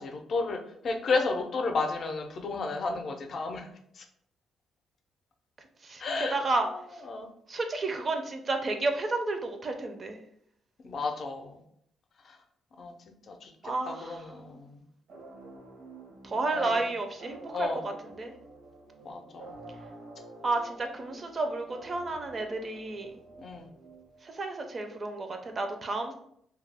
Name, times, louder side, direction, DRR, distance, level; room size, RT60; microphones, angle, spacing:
voice 1, 0.0-3.7 4.0-4.1 6.0-6.4 7.1-7.3 10.8-11.6 12.2-12.4 12.8-12.9 13.3-13.5 13.9-14.8 16.5-16.8 17.5-17.8 19.0-19.6 23.4-23.7, left 3 dB, 50° left, 4 dB, 0.4 m, -32 dB
voice 2, 6.3-7.0 7.5-10.2 13.6-14.3 16.2-18.3 20.4-23.1 24.2-26.1, right 2 dB, 40° right, 5 dB, 0.4 m, -31 dB
sound 1, 15.1-24.5, right 2 dB, 75° right, 0.7 m, -49 dB
2.3 x 2.0 x 3.3 m, 0.70 s
cardioid pair, 90°, 0 cm